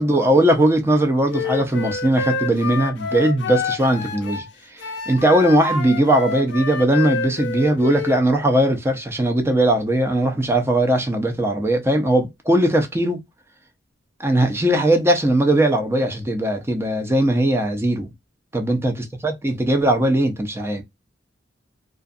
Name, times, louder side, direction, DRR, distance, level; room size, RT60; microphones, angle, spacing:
voice 1, 0.0-4.4 5.1-13.2 14.2-18.1 18.5-18.9 19.2-20.8, right 1 dB, 15° right, 0.6 m, -19 dB
Wind instrument woodwind instrument, 1.3-4.5 4.8-8.2, left 4 dB, 65° left, 0.5 m, -28 dB
2.4 x 2.4 x 2.5 m
head